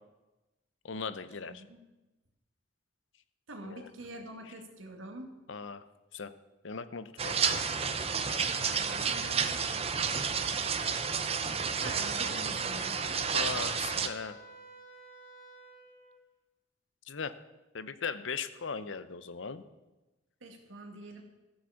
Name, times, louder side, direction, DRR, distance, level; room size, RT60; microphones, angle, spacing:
voice 1, 0.8-1.6 3.6-3.9 4.5-4.6 5.5-5.9 6.1-6.3 6.6-7.7 13.3-14.4 17.1-17.3 17.7-19.6, left 5 dB, 75° left, 13 dB, 0.7 m, -38 dB
voice 2, 1.5-1.8 3.5-5.3 8.4-9.6 11.8-13.0 20.4-21.2, right 1 dB, 85° right, 3 dB, 2.0 m, -45 dB
sound 1, 7.2-14.1, right 6 dB, 30° right, 0.7 m, -31 dB
Wind instrument woodwind instrument, 12.7-16.2, right 2 dB, 65° right, 4.2 m, -52 dB
14.0 x 7.8 x 7.0 m, 1.1 s
head